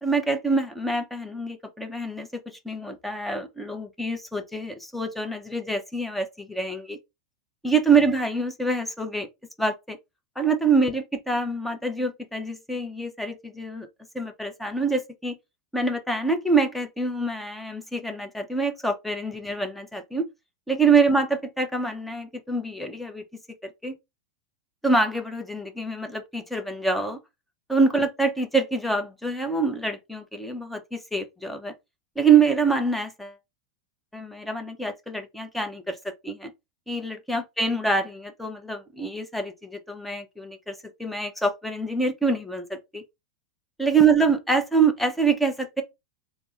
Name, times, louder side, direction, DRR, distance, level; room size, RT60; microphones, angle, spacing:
voice 1, 0.0-2.3 2.6-7.0 7.6-9.3 9.6-10.0 10.4-13.9 14.1-15.3 15.7-20.3 20.7-23.2 23.6-24.0 24.8-27.2 27.7-31.7 32.2-33.3 34.1-36.5 36.9-43.0 43.8-45.8, right 4 dB, 5° left, 0.7 m, -25 dB
3.4 x 2.1 x 3.8 m
hypercardioid pair, 110°, 3 cm